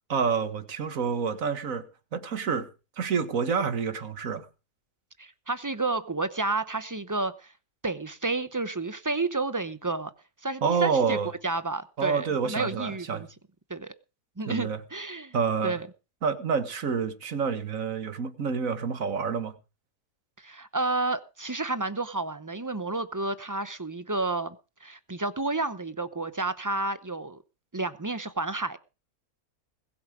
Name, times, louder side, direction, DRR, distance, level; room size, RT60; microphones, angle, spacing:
voice 1, 0.1-2.7 3.0-4.5 10.6-11.3 12.0-13.3 14.5-14.8 15.3-15.8 16.2-19.6, right 5 dB, 65° right, 1.8 m, -28 dB
voice 2, 5.2-7.5 7.8-10.1 10.4-11.2 11.4-13.3 13.7-13.9 14.4-15.3 15.6-15.9 20.4-27.4 27.7-28.8, right 3 dB, 20° right, 0.6 m, -31 dB
21.0 x 7.5 x 4.9 m
omnidirectional pair, 1.5 m